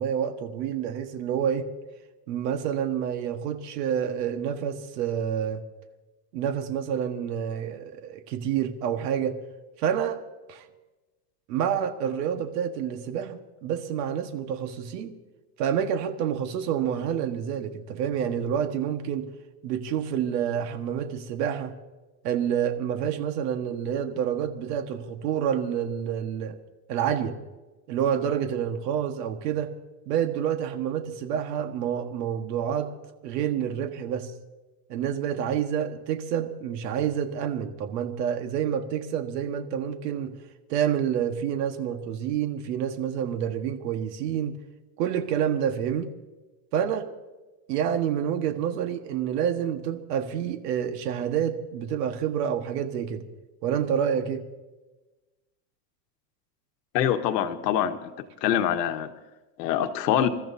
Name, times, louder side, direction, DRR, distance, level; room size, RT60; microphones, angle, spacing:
voice 1, 0.0-1.7 2.3-5.6 6.3-9.4 9.8-10.2 10.5-10.6 11.5-15.1 15.6-19.2 19.6-21.7 22.2-26.6 26.9-27.4 27.9-29.7 30.0-32.9 33.2-34.3 34.9-40.3 40.7-44.6 45.0-46.1 46.7-47.1 47.7-53.3 53.6-54.4, right 9 dB, 75° right, 7 dB, 1.6 m, -28 dB
voice 2, 56.9-58.1 58.4-59.1 59.6-60.3, left 10 dB, 85° left, 8 dB, 1.4 m, -24 dB
27.0 x 13.5 x 2.7 m, 1.1 s
supercardioid pair, 165°, 48 cm